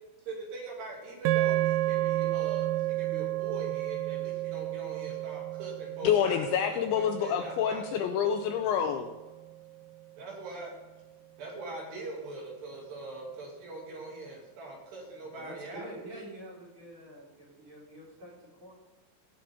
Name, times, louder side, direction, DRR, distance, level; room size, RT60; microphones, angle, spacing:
voice 1, 0.3-8.0 10.2-10.7 11.4-15.9, right 3 dB, 60° right, -2 dB, 4.2 m, -42 dB
sound 1, 1.3-9.6, right 16 dB, 85° right, 3.1 m, -32 dB
voice 2, 6.0-9.1, left 8 dB, 80° left, 5 dB, 2.8 m, -27 dB
voice 3, 15.3-18.3 18.6-18.7, right 1 dB, 25° right, -3 dB, 4.4 m, -46 dB
17.5 x 7.7 x 3.6 m, 1.2 s
omnidirectional pair, 5.8 m